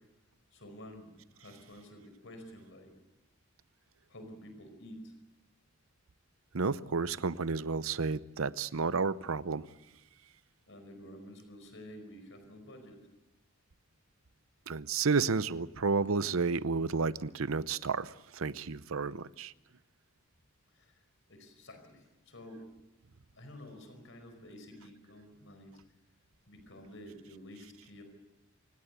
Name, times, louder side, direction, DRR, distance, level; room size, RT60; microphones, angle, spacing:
voice 1, 0.5-2.9 4.1-5.1 10.7-13.1 20.7-21.0 21.3-22.6 23.4-25.8 26.5-28.0, equal, 60° left, 7 dB, 4.9 m, -50 dB
voice 2, 6.5-9.7 14.7-19.5, right 4 dB, 70° right, 17 dB, 0.7 m, -31 dB
28.0 x 17.0 x 8.2 m, 0.98 s
head